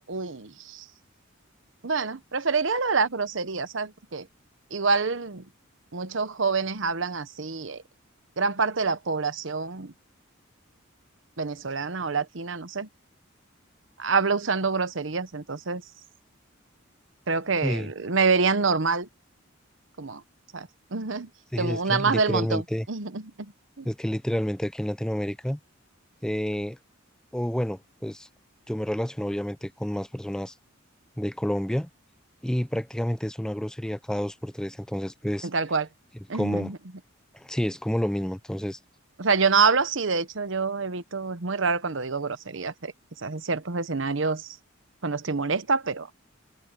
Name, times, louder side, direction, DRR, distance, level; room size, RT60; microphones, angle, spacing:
voice 1, 0.1-0.9 1.8-4.3 4.7-5.5 5.9-7.8 8.4-9.9 11.4-12.9 14.0-15.8 17.3-19.1 20.0-20.2 20.5-21.3 21.6-23.9 35.4-35.9 36.3-36.8 39.2-42.9 43.2-44.6 45.0-46.1, right 4 dB, 65° right, 1.0 m, -26 dB
voice 2, 21.5-22.8 23.9-25.6 26.2-26.8 27.3-28.3 28.7-30.5 31.2-31.9 32.4-35.5 36.3-36.7 37.3-38.8, equal, 5° left, 0.4 m, -29 dB
head